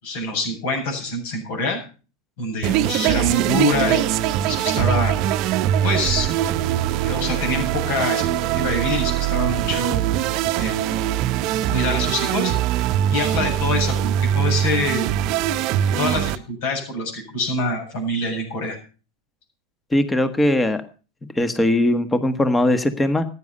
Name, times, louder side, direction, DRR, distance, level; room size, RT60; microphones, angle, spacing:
voice 1, 0.0-1.8 2.4-5.1 5.8-6.3 7.0-8.3 8.5-10.1 10.6-11.0 11.7-12.5 13.1-15.1 16.0-18.8, left 2 dB, 65° left, 2 dB, 7.7 m, -25 dB
sound 1, 2.6-16.4, right 11 dB, 50° right, 0.8 m, -22 dB
voice 2, 19.9-20.8 21.3-23.2, left 1 dB, 10° left, 10 dB, 1.4 m, -19 dB
14.5 x 10.0 x 5.5 m, 0.37 s
hypercardioid pair, 95°, 0 cm